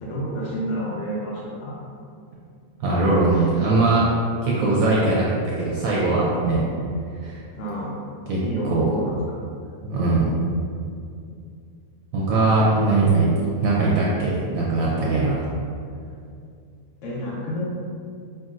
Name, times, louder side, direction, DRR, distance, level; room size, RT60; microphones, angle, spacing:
voice 1, 0.0-1.9 7.5-8.0 8.4-9.4 17.0-17.6, equal, 65° left, -5 dB, 0.8 m, -29 dB
voice 2, 2.8-4.1 4.4-6.6 7.2-7.4 8.3-8.4 8.7-8.9 9.8-10.3 12.1-13.3 13.6-15.5, right 3 dB, 70° right, -6 dB, 1.0 m, -20 dB
5.8 x 2.5 x 2.4 m, 2.4 s
omnidirectional pair, 1.7 m